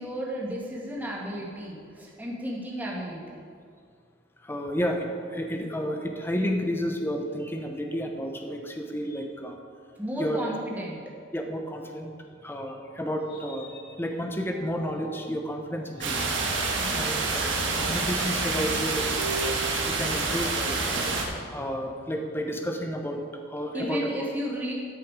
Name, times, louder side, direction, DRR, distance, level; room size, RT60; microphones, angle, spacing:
voice 1, 0.0-3.4 10.0-11.0 16.8-17.2 23.7-24.7, equal, 10° right, -4 dB, 1.9 m, -33 dB
voice 2, 4.4-9.6 10.2-10.4 11.3-12.1 12.4-16.4 16.9-19.6 19.9-23.2 23.5-24.1, equal, 10° left, 3 dB, 0.8 m, -31 dB
sound 1, 12.1-15.2 15.7-20.9, right 3 dB, 55° left, 2.1 m, -42 dB
sound 2, 16.0-21.2, right 3 dB, 65° right, 1.6 m, -27 dB
13.0 x 6.8 x 4.8 m, 2.2 s
head